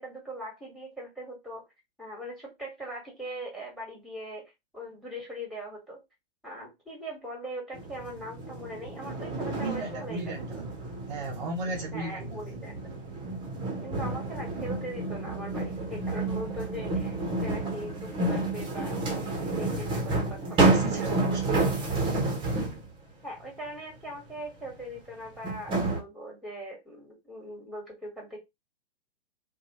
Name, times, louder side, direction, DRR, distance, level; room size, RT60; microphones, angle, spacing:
voice 1, 0.0-1.6 2.0-4.4 4.7-6.0 6.4-10.6 11.9-12.9 13.8-17.1 17.4-19.0 19.4-21.1 23.2-28.4, equal, ahead, 1.4 m, -40 dB
sound 1, 7.7-22.9 24.6-24.7 25.4-26.0, right 2 dB, 15° right, 0.8 m, -30 dB
voice 2, 9.6-10.7 11.1-12.4 20.5-21.8, right 2 dB, 50° right, 0.7 m, -36 dB
2.7 x 2.3 x 2.8 m
figure-of-eight pair, 115°, 30 cm